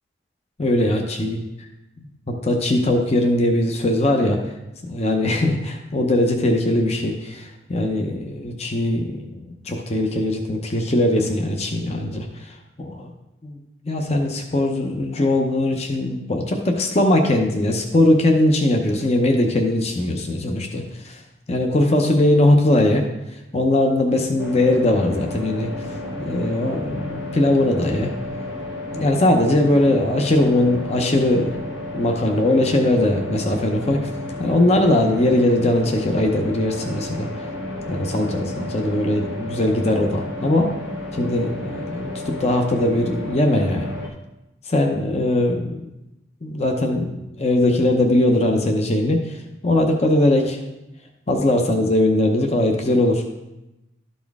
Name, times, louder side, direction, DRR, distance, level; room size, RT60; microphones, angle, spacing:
voice 1, 0.6-1.4 2.0-4.5 4.8-13.1 13.4-21.2 21.5-23.0 23.3-28.1 28.9-31.5 31.9-34.1 34.4-37.5 37.9-40.7 41.1-43.9 44.6-45.9 46.4-50.6 51.3-53.2, left 1 dB, 35° left, 3 dB, 0.7 m, -20 dB
sound 1, 24.4-44.1, left 1 dB, 70° left, 1.4 m, -32 dB
12.5 x 4.2 x 3.5 m, 0.95 s
head